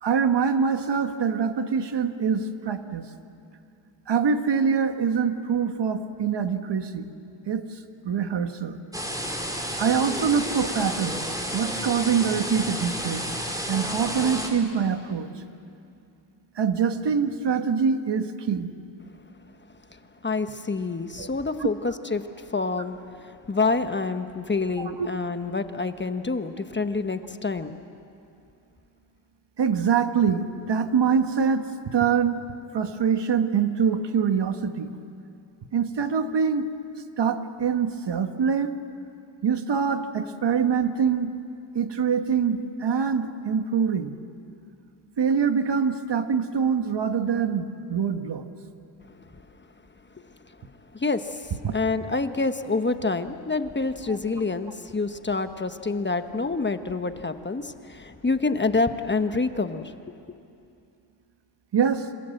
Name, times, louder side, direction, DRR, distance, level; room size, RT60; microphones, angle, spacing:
voice 1, 0.0-3.1 4.1-7.1 7.5-7.8 8.0-8.8 9.8-11.3 11.5-13.2 13.7-15.3 16.6-18.7 21.2-21.3 21.6-21.7 24.8-25.1 29.6-32.4 32.7-34.9 35.7-36.7 37.2-38.7 39.4-41.3 41.7-44.2 45.2-48.4 51.6-51.7 54.1-54.2 61.7-62.1, right 6 dB, 65° right, 8 dB, 1.6 m, -24 dB
sound 1, 8.9-14.5, equal, 10° right, 3.9 m, -31 dB
voice 2, 19.9-27.8 49.1-49.2 50.5-50.6 50.9-59.9 60.3-60.4, left 3 dB, 25° left, 8 dB, 1.1 m, -27 dB
28.0 x 26.0 x 7.9 m, 2.5 s
cardioid pair, 100°, 46 cm